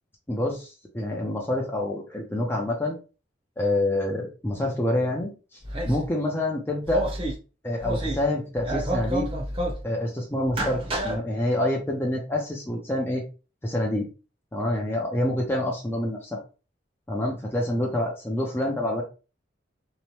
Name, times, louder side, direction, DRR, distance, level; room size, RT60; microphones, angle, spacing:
voice 1, 0.3-3.0 3.6-5.6 5.9-7.0 7.6-9.3 9.8-13.2 13.6-14.1 14.5-16.4 17.1-19.0, left 1 dB, 10° left, -2 dB, 0.4 m, -27 dB
sound 1, 5.6-6.1 6.8-7.3 7.8-8.3 8.5-9.8 10.4-11.2, right 1 dB, 30° right, 0.7 m, -29 dB
2.8 x 2.1 x 3.0 m, 0.33 s
head